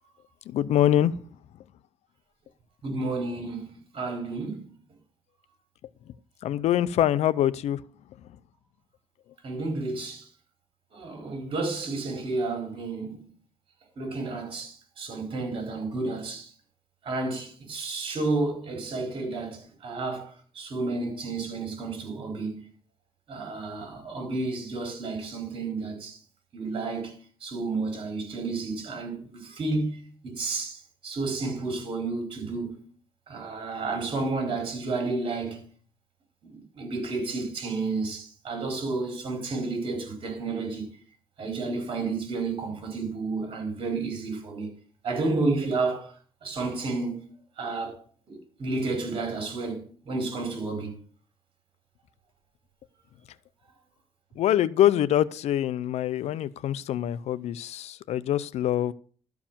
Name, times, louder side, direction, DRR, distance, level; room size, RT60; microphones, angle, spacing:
voice 1, 0.5-1.2 6.4-7.8 54.4-58.9, left 11 dB, 75° left, 0.6 m, -24 dB
voice 2, 2.8-4.6 9.4-10.3 10.9-13.2 14.0-16.5 17.0-22.7 23.3-26.2 26.5-32.8 33.3-35.6 36.4-40.9 41.4-44.7 45.0-46.1 46.4-47.2 47.6-48.0 48.3-50.9, right 3 dB, 50° right, 4.4 m, -31 dB
13.0 x 4.8 x 7.3 m
cardioid pair, 110°, 11 cm